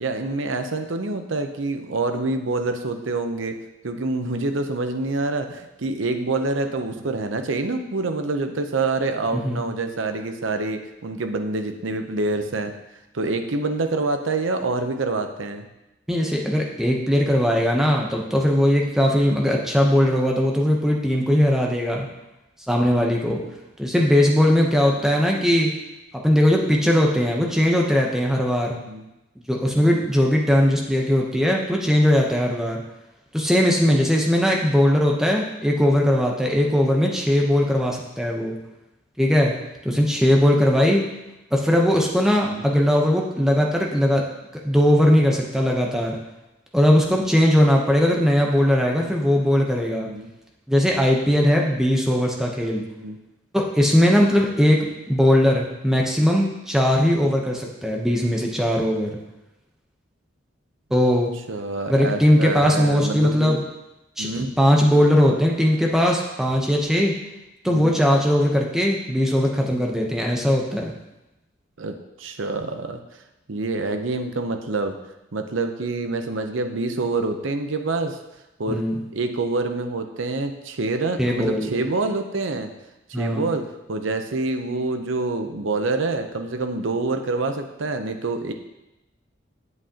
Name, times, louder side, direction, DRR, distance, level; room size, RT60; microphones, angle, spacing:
voice 1, 0.0-3.6 3.8-12.7 13.1-15.7 28.8-29.1 29.8-30.0 39.9-40.0 42.4-42.7 49.9-50.3 53.0-53.2 54.1-54.4 57.2-57.3 61.5-63.5 64.2-64.5 67.6-67.9 71.8-73.0 73.5-75.0 75.3-78.2 78.6-78.8 79.1-82.7 83.2-88.5, right 3 dB, 75° right, 6 dB, 0.7 m, -26 dB
voice 2, 9.3-9.6 16.1-22.1 22.7-23.4 23.8-25.7 26.2-28.8 29.5-32.8 33.3-38.6 39.2-39.5 39.8-41.1 41.5-44.2 44.6-46.2 46.7-50.1 50.7-52.9 53.5-59.2 60.9-61.3 61.9-63.6 64.2-67.2 67.6-70.9 78.7-79.0 81.2-81.7 83.1-83.4, equal, ahead, -1 dB, 0.8 m, -19 dB
7.9 x 7.7 x 2.9 m, 0.95 s
head